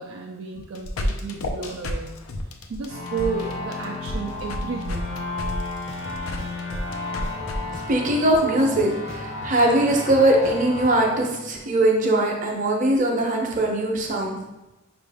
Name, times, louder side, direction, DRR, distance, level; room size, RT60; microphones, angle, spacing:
voice 1, 0.0-2.2 2.7-5.2, right 5 dB, 60° right, 0 dB, 0.4 m, -32 dB
sound 1, 0.5-7.6, left 1 dB, 85° left, 0.5 m, -31 dB
sound 2, 2.9-12.2, left 2 dB, 60° left, 1.2 m, -33 dB
sound 3, 5.4-5.5 5.9-6.8 7.2-8.3 8.6-10.9, left 2 dB, 30° left, 0.6 m, -40 dB
voice 2, 7.9-14.3, right 1 dB, 40° right, 0 dB, 0.7 m, -21 dB
5.5 x 2.5 x 3.4 m, 1.0 s
head